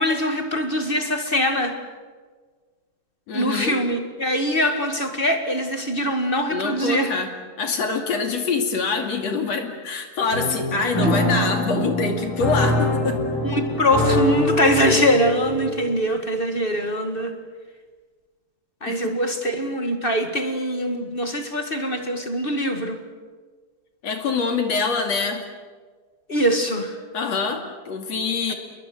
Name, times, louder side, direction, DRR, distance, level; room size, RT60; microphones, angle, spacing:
voice 1, 0.0-1.8 3.3-7.1 11.0-11.2 13.4-17.4 18.8-23.0 26.3-27.0, equal, 30° left, 5 dB, 1.1 m, -23 dB
voice 2, 3.3-3.8 6.5-7.3 7.6-13.2 18.9-19.1 24.0-25.4 27.1-28.5, left 4 dB, 50° left, 4 dB, 3.5 m, -25 dB
sound 1, 10.3-15.9, left 1 dB, 70° left, 8.8 m, -24 dB
29.0 x 21.5 x 7.8 m, 1.5 s
omnidirectional pair, 4.1 m